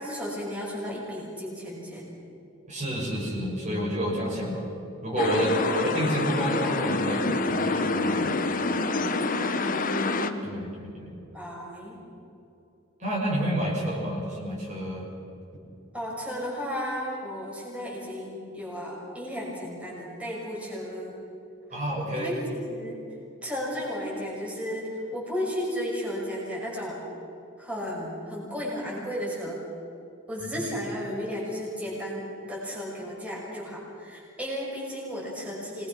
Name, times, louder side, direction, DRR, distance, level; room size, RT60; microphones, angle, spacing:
voice 1, 0.0-2.1 9.6-10.6 11.3-12.0 15.9-21.1 21.7-21.8 22.2-23.0 23.4-27.0 27.6-29.6 30.3-35.9, equal, 5° right, -5 dB, 6.1 m, -34 dB
voice 2, 2.7-4.7 5.0-8.3 10.4-11.1 13.0-15.1 21.7-22.3 30.5-30.6, equal, 35° right, -4 dB, 6.2 m, -29 dB
sound 1, 5.2-10.3, left 3 dB, 40° left, 1.3 m, -27 dB
27.0 x 20.5 x 6.3 m, 2.8 s
head